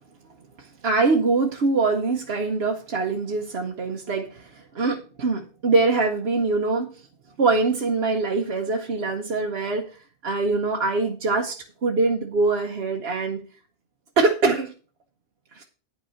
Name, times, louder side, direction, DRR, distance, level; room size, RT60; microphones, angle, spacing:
voice 1, 0.8-6.9 7.4-9.9 10.2-13.4 14.2-14.7 15.5-15.6, right 3 dB, 75° right, 1 dB, 1.2 m, -23 dB
10.0 x 5.9 x 5.7 m, 0.37 s
omnidirectional pair, 1.1 m